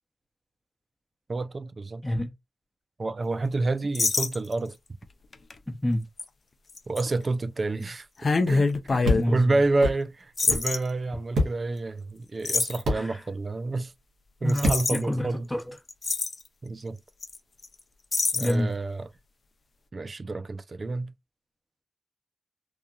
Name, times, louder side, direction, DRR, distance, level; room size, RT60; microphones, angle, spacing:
voice 1, 1.3-2.0 3.0-4.8 6.9-8.1 8.5-13.9 14.4-15.5 16.6-17.0 18.3-19.1 19.9-21.1, right 3 dB, 50° right, 0.3 m, -29 dB
voice 2, 2.0-2.3 5.7-6.1 7.8-7.9 9.1-9.6 12.9-13.3 14.4-15.8 18.4-18.7, left 1 dB, 10° left, 0.9 m, -28 dB
sound 1, 3.9-4.7 5.3-5.5 6.2-6.3 6.8-7.0 8.2-9.3 10.4-10.8 12.4-12.8 14.5-15.0 15.6-15.7 15.9-16.4 17.2-17.4 17.6-17.7 18.1-18.5, left 3 dB, 55° left, 0.5 m, -25 dB
sound 2, 9.0-9.2 9.8-10.0 10.5-10.6 11.3-11.5 12.8-13.0 14.6-14.8, equal, 80° right, 1.0 m, -24 dB
2.9 x 2.4 x 2.3 m
supercardioid pair, 40°, 0 cm